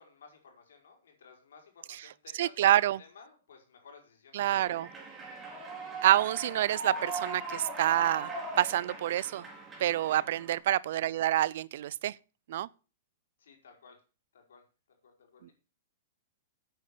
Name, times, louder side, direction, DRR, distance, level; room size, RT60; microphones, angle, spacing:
voice 1, 0.0-4.7 10.1-10.2 13.4-14.0 14.3-14.6 15.0-15.5, left 5 dB, 80° left, 4.8 m, -56 dB
voice 2, 2.4-3.0 4.3-4.9 6.0-8.3 8.6-9.5 9.8-12.1 12.5-12.7 15.4-15.5, right 13 dB, 60° right, 0.5 m, -27 dB
Human voice / Clapping / Cheering, 4.6-10.6, right 2 dB, 15° right, 4.0 m, -40 dB
9.0 x 8.4 x 6.8 m
hypercardioid pair, 140°, 0 cm